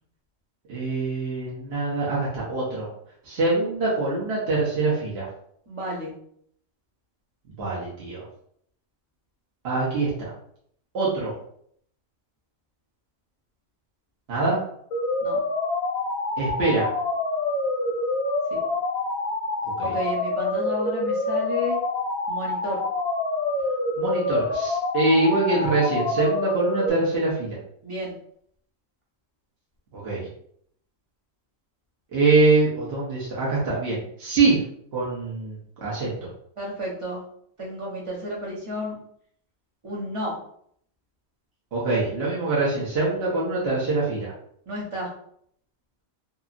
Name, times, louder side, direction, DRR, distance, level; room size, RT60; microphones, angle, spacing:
voice 1, 0.7-2.9 3.2-5.3 7.6-8.2 9.6-10.3 10.9-11.3 14.3-14.6 16.4-16.9 24.0-27.6 29.9-30.2 32.1-34.6 34.9-36.3 41.7-44.3, right 3 dB, 55° right, -6 dB, 0.9 m, -24 dB
voice 2, 5.7-6.1 15.2-15.4 18.5-18.6 19.8-21.8 22.3-22.8 27.8-28.2 36.6-37.2 37.6-39.0 39.8-40.4 44.7-45.1, left 1 dB, 30° right, -4 dB, 0.6 m, -31 dB
sound 1, 14.9-26.9, left 2 dB, 80° left, 1.0 m, -26 dB
2.8 x 2.5 x 2.4 m, 0.66 s
omnidirectional pair, 1.4 m